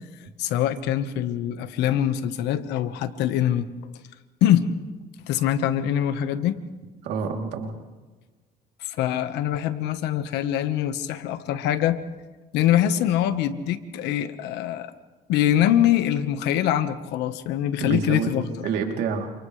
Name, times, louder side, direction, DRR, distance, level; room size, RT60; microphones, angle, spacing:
voice 1, 0.4-3.7 4.4-4.6 5.3-6.5 8.8-12.0 12.5-14.9 15.3-18.7, left 11 dB, 90° left, 10 dB, 1.4 m, -23 dB
voice 2, 7.0-7.7 17.8-19.3, right 6 dB, 85° right, 2 dB, 3.2 m, -28 dB
30.0 x 27.5 x 3.3 m, 1.3 s
cardioid pair, 110°, 17 cm